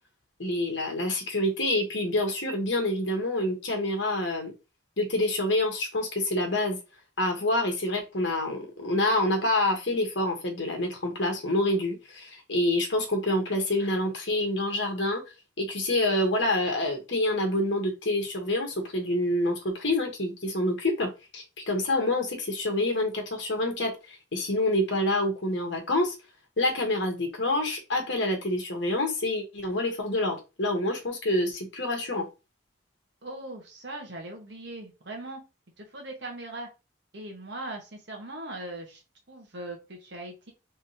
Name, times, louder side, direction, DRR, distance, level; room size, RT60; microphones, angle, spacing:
voice 1, 0.4-4.5 5.0-6.8 7.2-15.2 15.6-26.1 26.6-32.3, left 1 dB, 65° left, 3 dB, 1.3 m, -27 dB
voice 2, 33.2-35.4 35.8-36.7 37.1-39.0 39.3-40.5, right 2 dB, 65° right, 2 dB, 1.3 m, -39 dB
3.6 x 3.5 x 2.8 m, 0.27 s
head